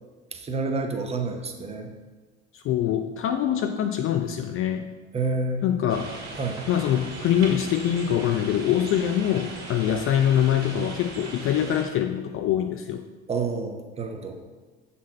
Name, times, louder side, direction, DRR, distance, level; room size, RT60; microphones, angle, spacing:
voice 1, 0.3-1.9 5.1-5.7 6.4-6.6 9.9-10.0 13.3-14.4, right 3 dB, 20° right, 4 dB, 0.8 m, -29 dB
voice 2, 2.5-4.9 5.6-6.1 6.7-13.0, left 10 dB, 40° left, 6 dB, 0.4 m, -24 dB
sound 1, 5.9-11.8, right 2 dB, 45° right, 2.0 m, -39 dB
7.2 x 4.2 x 4.2 m, 1.3 s
hypercardioid pair, 70°, 35 cm